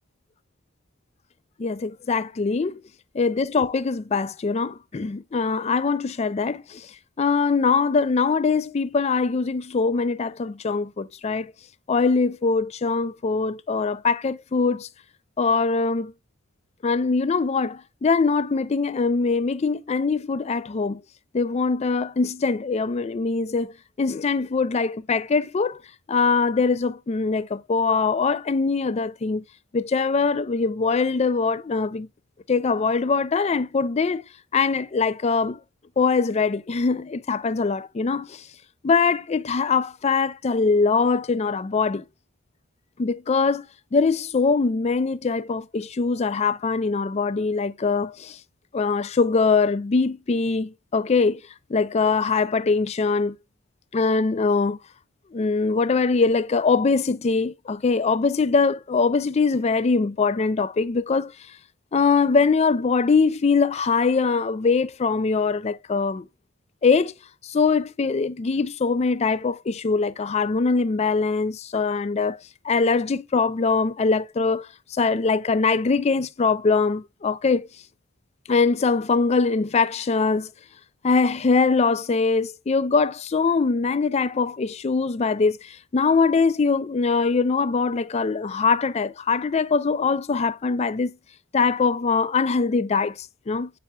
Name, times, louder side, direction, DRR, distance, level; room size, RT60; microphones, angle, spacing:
voice 1, 1.6-2.8 3.1-6.9 7.2-11.5 11.9-14.9 15.4-16.1 16.8-21.0 21.3-23.7 24.0-25.8 26.1-29.4 29.7-32.1 32.5-34.2 34.5-35.6 36.0-38.4 38.8-42.0 43.0-43.7 43.9-48.4 48.7-51.4 51.7-53.4 53.9-54.8 55.3-61.3 61.9-66.3 66.8-67.1 67.4-72.4 72.6-77.7 78.5-80.5 81.0-91.1 91.5-93.7, left 4 dB, 30° left, 0.3 m, -22 dB
8.7 x 5.4 x 2.2 m
head